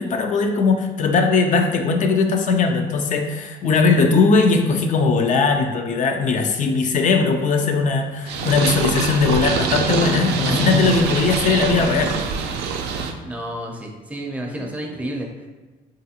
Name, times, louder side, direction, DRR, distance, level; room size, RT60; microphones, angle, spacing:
voice 1, 0.0-12.1, left 4 dB, 50° left, 4 dB, 0.4 m, -19 dB
Skateboard, 7.3-12.7, left 1 dB, 85° left, 1.3 m, -32 dB
Purr, 8.3-13.1, right 5 dB, 75° right, 0.4 m, -24 dB
voice 2, 13.2-15.5, right 1 dB, 10° right, 0 dB, 0.6 m, -31 dB
3.8 x 2.5 x 2.8 m, 1.2 s
cardioid pair, 110°, 17 cm